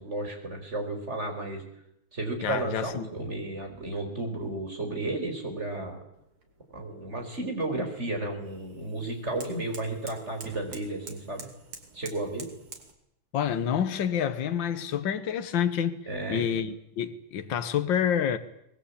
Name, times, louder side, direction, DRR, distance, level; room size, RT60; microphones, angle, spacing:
voice 1, 0.0-1.6 2.1-6.0 6.7-11.5 11.9-12.5 16.1-16.4, right 2 dB, 30° right, 5.1 m, -33 dB
voice 2, 2.4-3.1 13.3-16.0 16.3-18.4, left 8 dB, 65° left, 2.0 m, -28 dB
sound 1, 6.1-12.9, right 4 dB, 90° right, 3.7 m, -48 dB
24.0 x 20.5 x 8.7 m
omnidirectional pair, 2.3 m